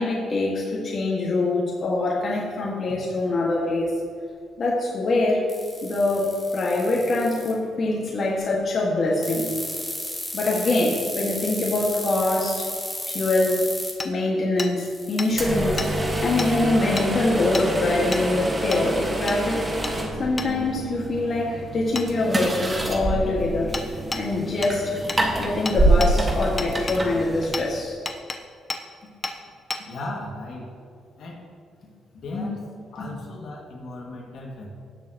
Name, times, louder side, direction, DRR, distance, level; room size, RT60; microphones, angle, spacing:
voice 1, 0.0-3.9 4.6-5.5 5.8-9.5 10.3-12.7 13.1-13.7 14.0-19.6 20.2-23.7 24.1-25.0 25.4-28.0 32.3-32.5 33.0-33.1, left 2 dB, 45° left, -3 dB, 1.8 m, -24 dB
sound 1, 5.5-7.5 9.2-13.9 14.8-16.6, left 1 dB, 5° left, 2.8 m, -33 dB
Hammer, 14.0-14.1 14.6-14.7 15.2-15.3 15.8-15.9 16.4-16.5 17.0-17.1 17.5-17.7 18.1-18.3 18.7-18.8 19.3-19.4 19.8-20.0 20.4-20.5 22.0-22.1 23.7-23.9 24.1-24.2 24.6-24.8 25.1-25.2 25.7-26.1 26.6-27.0 27.5-27.7 28.1-28.4 28.7-28.8 29.2-29.4 29.7-29.8, left 3 dB, 30° left, 0.9 m, -30 dB
sound 2, 15.3-27.9, right 1 dB, 20° right, 1.6 m, -26 dB
voice 2, 29.9-30.7 31.2-31.5 32.1-32.6 32.9-34.7, left 1 dB, 70° left, -2 dB, 2.1 m, -36 dB
18.0 x 6.8 x 3.0 m, 2.2 s
cardioid pair, 90°, 0 cm